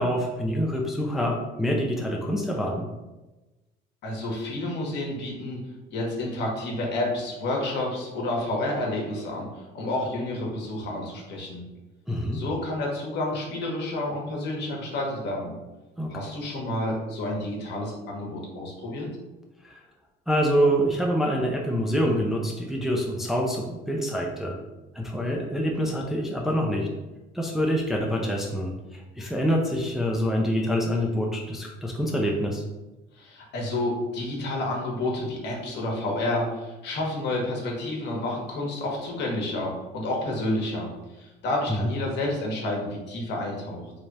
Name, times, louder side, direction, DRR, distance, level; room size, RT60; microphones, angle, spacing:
voice 1, 0.0-2.9 12.1-12.4 16.0-16.1 19.6-19.8 20.3-24.6 24.9-26.9 27.3-32.6 41.7-41.9, equal, ahead, -1 dB, 0.4 m, -26 dB
voice 2, 4.0-5.6 5.9-11.6 12.3-15.5 16.1-19.1 33.2-40.9 41.2-43.9, left 1 dB, 65° left, -1 dB, 1.1 m, -30 dB
3.2 x 2.4 x 4.0 m, 1.1 s
cardioid pair, 135°, 19 cm